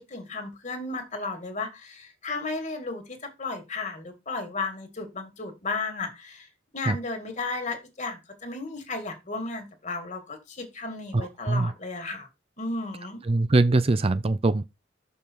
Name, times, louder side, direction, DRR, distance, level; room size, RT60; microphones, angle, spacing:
voice 1, 0.0-6.5 6.7-12.3 12.6-13.2, left 3 dB, 40° left, 2.1 m, -34 dB
voice 2, 11.1-11.7 13.2-14.6, right 2 dB, 35° right, 0.5 m, -22 dB
6.6 x 5.5 x 4.6 m
head